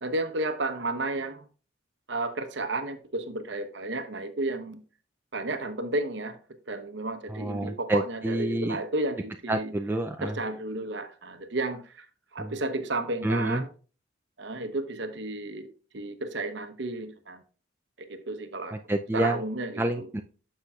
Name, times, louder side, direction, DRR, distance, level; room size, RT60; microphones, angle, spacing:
voice 1, 0.0-1.4 2.1-4.8 5.3-6.4 6.7-9.7 10.2-12.1 12.3-13.7 14.4-15.7 15.9-17.4 18.0-18.8 19.1-20.1, right 2 dB, 60° right, 0.9 m, -32 dB
voice 2, 7.3-8.8 9.5-10.4 12.4-12.5 13.2-13.7 18.7-19.4 19.8-20.2, right 1 dB, 10° right, 0.3 m, -28 dB
10.0 x 6.7 x 2.4 m
head